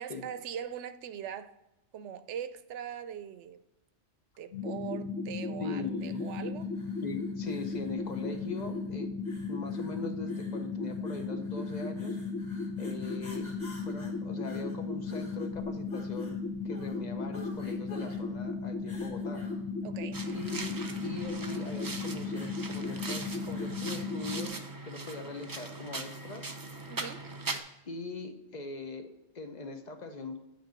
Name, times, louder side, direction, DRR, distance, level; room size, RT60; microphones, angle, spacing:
voice 1, 0.0-1.5 1.9-3.6 4.4-6.7 19.8-20.2 26.9-27.2, right 9 dB, 75° right, 0.9 m, -41 dB
sound 1, 4.5-24.5, left 4 dB, 70° left, 1.4 m, -36 dB
voice 2, 5.6-6.3 7.0-9.1 9.5-12.2 12.8-13.5 13.8-16.4 16.6-19.5 20.3-26.6 27.8-29.1 29.3-30.4, left 3 dB, 40° left, 0.9 m, -41 dB
sound 2, 5.9-23.9, left 3 dB, 25° left, 2.3 m, -54 dB
sound 3, 20.1-27.6, right 3 dB, 35° right, 0.3 m, -40 dB
9.1 x 3.3 x 6.4 m
omnidirectional pair, 1.2 m